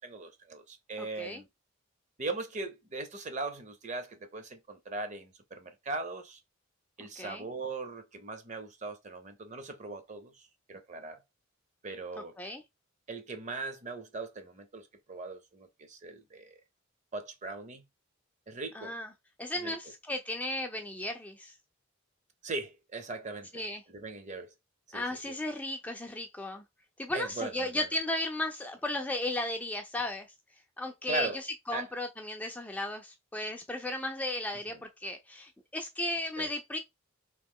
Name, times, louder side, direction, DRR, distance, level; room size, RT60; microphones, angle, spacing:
voice 1, 0.0-1.5 2.2-6.4 7.0-11.2 11.8-12.3 13.1-16.6 17.1-17.8 18.5-19.0 19.5-19.7 22.4-24.5 24.9-25.3 27.1-27.9 31.1-31.4 31.7-31.9 34.7-34.8 36.4-36.5, right 3 dB, 35° right, 0.7 m, -39 dB
voice 2, 1.0-1.4 7.2-7.4 12.4-12.6 18.7-19.1 19.4-21.5 23.5-23.8 24.9-26.6 27.0-30.3 30.8-31.3 31.7-36.8, left 1 dB, 5° left, 0.3 m, -35 dB
3.1 x 2.8 x 3.6 m
head